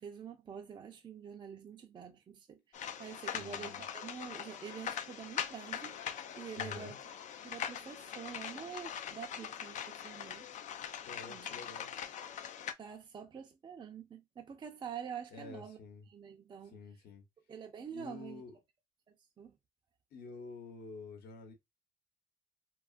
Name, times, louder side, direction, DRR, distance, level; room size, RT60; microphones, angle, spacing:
voice 1, 0.0-6.0 6.3-7.0 7.4-10.5 11.3-11.5 12.8-15.8 16.1-16.8 17.5-18.4 19.4-19.6, right 7 dB, 30° right, 0.4 m, -47 dB
sound 1, 2.7-12.7, left 9 dB, 45° left, 0.4 m, -42 dB
voice 2, 3.3-3.8 6.6-7.0 11.0-11.9 15.3-16.0 16.6-17.2 17.9-18.6 20.1-21.5, left 4 dB, 65° left, 1.0 m, -49 dB
2.8 x 2.3 x 2.4 m
cardioid pair, 110°, 17 cm